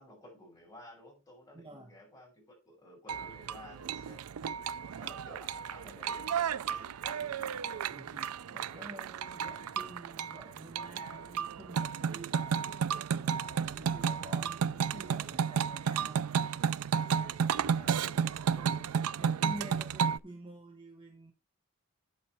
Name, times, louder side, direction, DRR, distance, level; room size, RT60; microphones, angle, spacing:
voice 1, 0.0-4.3 5.0-7.9 8.4-9.1 17.1-18.3, left 1 dB, 15° left, 6.3 m, -54 dB
voice 2, 1.5-2.0 5.0-5.1 7.9-16.2 16.8-21.3, right 1 dB, 25° right, 1.2 m, -49 dB
sound 1, 3.1-20.2, right 7 dB, 80° right, 0.4 m, -33 dB
8.6 x 7.4 x 4.5 m
head